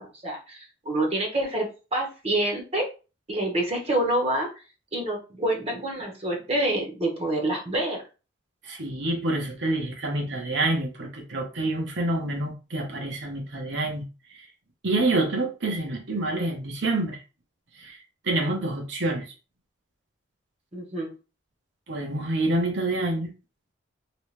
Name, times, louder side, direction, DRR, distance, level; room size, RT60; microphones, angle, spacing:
voice 1, 0.0-2.9 3.3-4.5 4.9-8.0 20.7-21.1, right 1 dB, 35° right, 1.0 m, -27 dB
voice 2, 8.6-14.0 14.3-14.4 14.8-17.2 17.8-18.0 18.2-19.3 21.9-23.3, right 2 dB, 70° right, 1.0 m, -27 dB
3.1 x 3.0 x 3.2 m
head